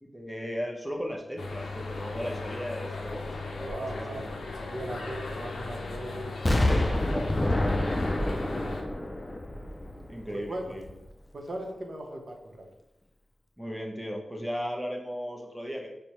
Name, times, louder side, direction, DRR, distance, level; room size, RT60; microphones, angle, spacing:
voice 1, 0.0-4.2 7.1-7.3 8.2-8.4 10.1-10.9 13.6-15.9, equal, ahead, 0 dB, 0.8 m, -36 dB
sound 1, 1.4-8.8, left 3 dB, 80° left, 0.4 m, -37 dB
voice 2, 3.5-8.0 8.3-9.3 10.3-10.8 11.3-12.7, right 1 dB, 50° right, 1 dB, 0.8 m, -40 dB
Explosion, 6.5-10.4 10.8-10.9, left 1 dB, 25° left, 0.4 m, -27 dB
5.1 x 2.1 x 2.9 m, 0.87 s
cardioid pair, 55°, 0 cm